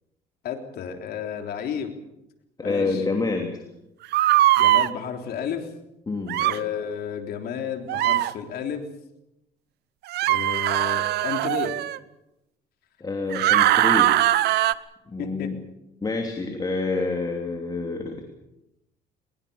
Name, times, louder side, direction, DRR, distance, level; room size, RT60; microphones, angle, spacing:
voice 1, 0.4-1.9 2.6-3.0 4.6-5.7 6.4-8.9 10.3-11.7 15.2-15.5, left 7 dB, 65° left, 5 dB, 3.6 m, -32 dB
voice 2, 2.6-3.6 6.1-6.4 13.0-14.1 15.1-15.6 16.0-18.2, left 3 dB, 25° left, 2 dB, 3.1 m, -27 dB
sound 1, 4.1-4.9 6.3-6.6 7.9-8.3 10.1-12.0 13.3-14.7, right 14 dB, 75° right, 0.9 m, -20 dB
22.0 x 21.5 x 7.1 m, 0.88 s
cardioid pair, 110°, 17 cm